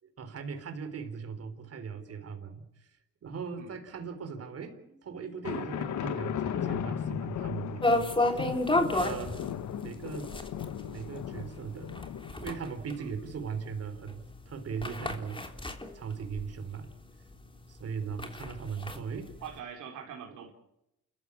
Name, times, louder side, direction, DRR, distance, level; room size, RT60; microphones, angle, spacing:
voice 1, 0.0-2.9 3.2-8.6 8.9-9.4 9.7-10.3 10.8-12.0 12.4-16.9 17.7-19.3 20.3-20.5, right 6 dB, 55° right, 7 dB, 4.0 m, -39 dB
sound 1, 5.4-12.6, left 9 dB, 70° left, 1.6 m, -36 dB
sound 2, 7.8-16.9 17.3-17.4 17.8-19.6, left 2 dB, 15° left, 3.4 m, -31 dB
voice 2, 19.4-20.5, right 7 dB, 80° right, 1 dB, 4.4 m, -43 dB
29.0 x 14.5 x 8.7 m, 0.86 s
cardioid pair, 90°, 30 cm